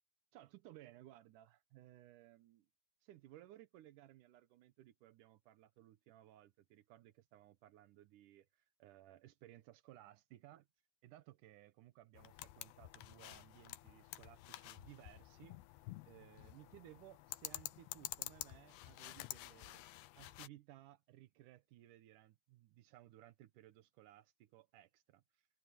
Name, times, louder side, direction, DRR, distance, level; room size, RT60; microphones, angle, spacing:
voice 1, 0.3-2.7 3.0-10.7 11.0-19.8 20.2-25.5, right 14 dB, 75° right, 1.9 m, -60 dB
sound 1, 12.1-20.5, left 16 dB, 80° left, 2.7 m, -50 dB
omnidirectional pair, 4.8 m